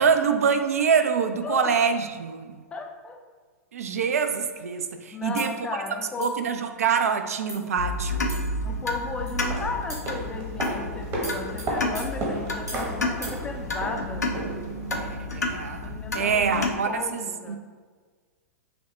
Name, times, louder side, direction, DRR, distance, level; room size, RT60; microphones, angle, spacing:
voice 1, 0.0-2.6 3.7-5.5 6.2-8.3 14.9-17.6, right 6 dB, 65° right, 7 dB, 0.4 m, -25 dB
voice 2, 1.4-1.8 2.7-3.2 5.1-6.4 8.6-14.3 15.8-17.6, left 4 dB, 15° left, 3 dB, 0.4 m, -35 dB
sound 1, 5.4-5.6 6.2-6.5 7.1-7.2 7.5-7.7 8.3-8.7 9.3-9.4 9.9-10.2 10.6-10.8 11.2-12.9 13.2-13.4, right 1 dB, 90° right, 1.3 m, -41 dB
sound 2, 7.8-16.7, left 2 dB, 80° left, 0.4 m, -31 dB
sound 3, 9.3-15.3 15.6-15.7, right 1 dB, 30° right, 0.9 m, -34 dB
5.6 x 2.1 x 3.1 m, 1.5 s
figure-of-eight pair, 100°, 9 cm